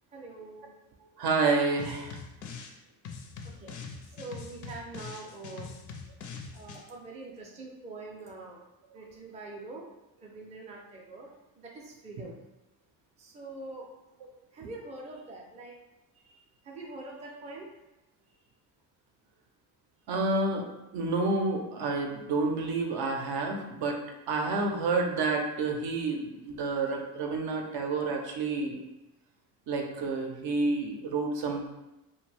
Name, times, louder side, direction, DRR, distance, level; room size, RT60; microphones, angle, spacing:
voice 1, 0.1-0.8 2.9-3.0 3.4-3.8 4.2-5.7 6.5-8.6 8.9-9.8 10.2-12.4 13.2-13.9 14.5-15.8 16.1-17.7, right 2 dB, 15° right, -2 dB, 0.4 m, -44 dB
voice 2, 1.2-2.2 20.1-20.7 20.9-24.0 24.3-28.8 29.7-31.7, right 3 dB, 60° right, 2 dB, 0.6 m, -29 dB
sound 1, 1.8-2.8 3.0-6.8, left 5 dB, 45° left, 0.4 m, -43 dB
2.5 x 2.2 x 3.2 m, 0.96 s
cardioid pair, 105°, 43 cm